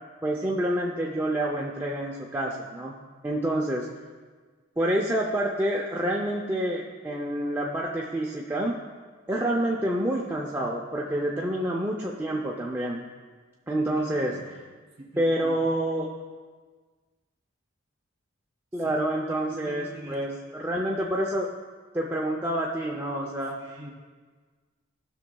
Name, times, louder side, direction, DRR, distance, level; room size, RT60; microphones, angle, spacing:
voice 1, 0.2-2.9 3.2-3.9 4.8-8.8 9.3-13.1 13.7-14.3 15.2-16.1 18.7-21.5 21.9-23.6, right 1 dB, 10° right, -3 dB, 0.6 m, -28 dB
voice 2, 13.9-14.5 15.0-15.7 18.8-19.0 19.5-20.3 23.6-23.9, right 1 dB, 30° right, -1 dB, 2.2 m, -43 dB
18.0 x 6.1 x 2.3 m, 1.5 s
head